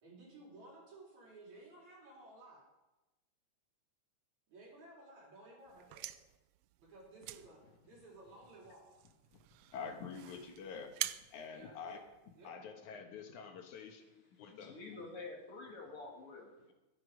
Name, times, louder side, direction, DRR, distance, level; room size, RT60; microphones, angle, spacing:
voice 1, 0.0-2.6 4.5-6.1 6.8-7.6 7.9-9.1 11.5-12.0 12.4-12.6, right 2 dB, 70° right, -3 dB, 5.5 m, -56 dB
cigarett zippo, 5.7-12.5, right 14 dB, 90° right, 1.3 m, -47 dB
voice 2, 9.7-10.9 11.3-12.0 12.4-15.0, left 6 dB, 85° left, 4 dB, 2.8 m, -47 dB
voice 3, 14.5-16.5, left 3 dB, 50° left, -1 dB, 3.4 m, -48 dB
13.5 x 12.5 x 5.1 m, 1.0 s
omnidirectional pair, 3.3 m